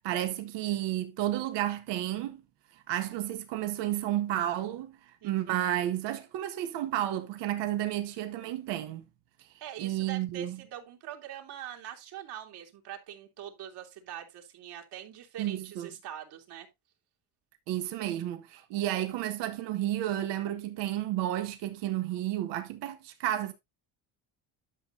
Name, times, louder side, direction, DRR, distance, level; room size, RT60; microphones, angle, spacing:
voice 1, 0.0-2.4 2.9-9.1 9.8-10.6 15.4-15.9 17.7-23.5, right 13 dB, 85° right, 1.7 m, -32 dB
voice 2, 5.2-5.6 9.6-16.7, right 10 dB, 65° right, 3.3 m, -43 dB
12.0 x 6.8 x 2.7 m
cardioid pair, 115°, 41 cm